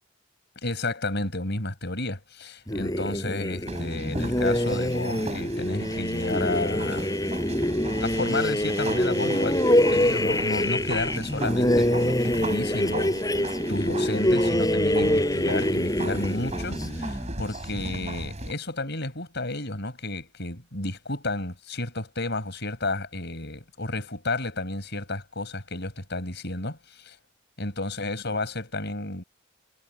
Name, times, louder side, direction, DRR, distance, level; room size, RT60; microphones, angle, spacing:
voice 1, 0.6-7.1 8.0-27.1 27.6-29.2, left 2 dB, 55° left, 6.8 m, -32 dB
sound 1, 2.7-17.6, left 1 dB, 20° left, 5.7 m, -25 dB
sound 2, 3.7-18.5, right 2 dB, 35° right, 4.7 m, -37 dB
head